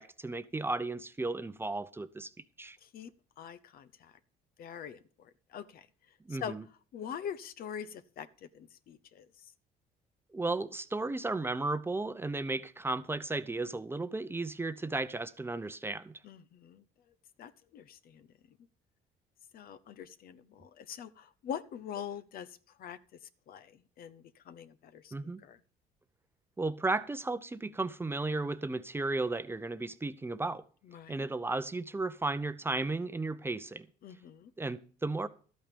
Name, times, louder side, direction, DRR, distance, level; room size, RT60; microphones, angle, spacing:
voice 1, 0.0-2.3 2.6-2.8 6.3-6.6 10.3-16.2 25.1-25.4 26.6-30.6 31.1-33.9 34.6-35.3, right 2 dB, 15° right, 0.7 m, -34 dB
voice 2, 2.8-3.1 3.4-4.1 4.6-5.9 6.3-6.6 6.9-9.5 16.2-16.8 17.4-18.3 19.5-23.0 23.5-25.1 25.4-25.6 30.9-31.3 34.0-34.5, left 8 dB, 60° left, 0.8 m, -44 dB
12.5 x 8.7 x 5.3 m
cardioid pair, 110°, 17 cm